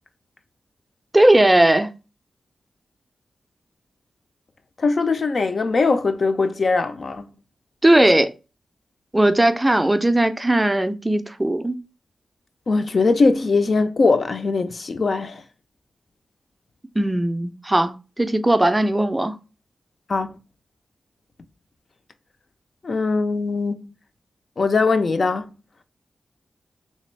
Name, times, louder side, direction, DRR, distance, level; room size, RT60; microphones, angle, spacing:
voice 1, 1.1-1.9 7.8-8.3 9.1-11.8 17.0-19.4, right 1 dB, 15° right, 0.4 m, -18 dB
voice 2, 4.8-7.3 12.7-15.4 20.1-20.4 22.8-23.9 24.6-25.5, left 3 dB, 50° left, 0.4 m, -21 dB
3.3 x 2.8 x 3.2 m
wide cardioid pair, 90°, 0 cm